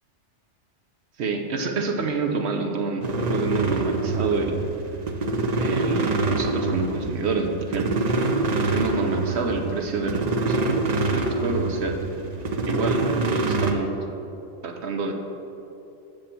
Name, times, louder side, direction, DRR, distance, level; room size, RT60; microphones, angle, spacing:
voice 1, 1.2-4.6 5.6-8.1 8.7-10.6 11.1-12.0 12.7-13.0 13.3-13.9 14.6-15.1, right 4 dB, 65° right, 4 dB, 1.0 m, -28 dB
sound 1, 3.0-13.7, right 3 dB, 45° right, 0.6 m, -25 dB
7.3 x 5.2 x 6.9 m, 2.9 s
omnidirectional pair, 1.2 m